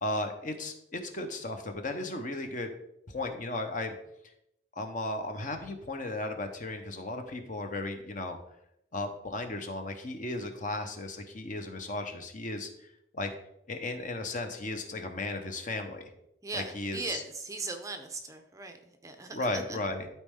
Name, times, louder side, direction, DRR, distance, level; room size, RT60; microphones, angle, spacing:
voice 1, 0.0-2.7 3.1-3.9 4.8-8.4 8.9-12.7 13.1-13.3 13.7-16.1 16.5-17.2 19.3-20.1, left 2 dB, 40° left, 5 dB, 0.9 m, -35 dB
voice 2, 16.4-19.8, right 3 dB, 15° right, 6 dB, 0.6 m, -39 dB
12.5 x 4.3 x 3.7 m, 0.79 s
head